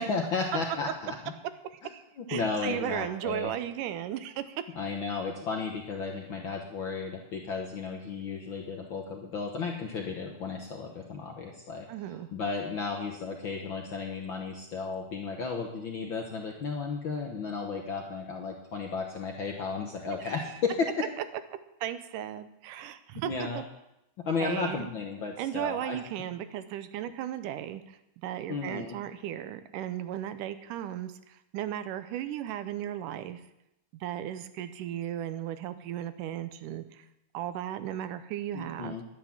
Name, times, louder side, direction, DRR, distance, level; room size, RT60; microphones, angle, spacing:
voice 1, 0.0-1.3 2.2-3.5 4.7-11.9 12.3-21.0 23.1-23.6 24.2-26.0 28.5-29.0 38.5-39.0, left 4 dB, 65° left, 2 dB, 1.2 m, -34 dB
voice 2, 1.7-2.0 2.3-4.6 11.9-12.3 20.2-20.3 21.8-23.6 24.4-24.9 25.4-28.0 28.2-33.4 33.9-37.1 37.3-39.0, right 11 dB, 85° right, 11 dB, 2.3 m, -36 dB
10.5 x 10.0 x 7.3 m, 0.87 s
omnidirectional pair, 3.7 m